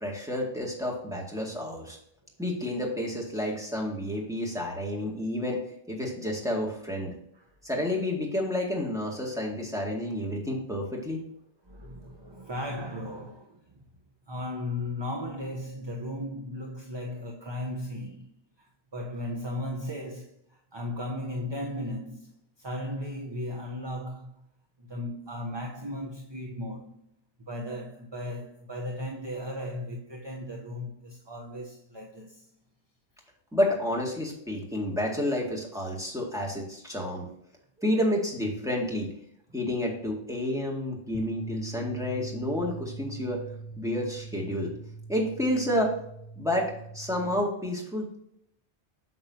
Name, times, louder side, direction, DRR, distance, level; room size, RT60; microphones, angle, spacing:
voice 1, 0.0-2.0 2.4-5.6 5.9-7.1 7.6-11.2 33.5-37.2 37.8-39.1 39.5-43.4 43.8-44.7 45.1-45.9 46.4-48.1, left 1 dB, 5° right, 2.1 m, -30 dB
voice 2, 11.6-13.6 14.3-22.3 22.6-24.3 24.8-27.0 27.5-32.5, left 1 dB, 25° right, 0.8 m, -36 dB
sound 1, 41.1-47.4, right 3 dB, 35° left, 1.1 m, -41 dB
8.6 x 6.6 x 2.8 m
omnidirectional pair, 1.2 m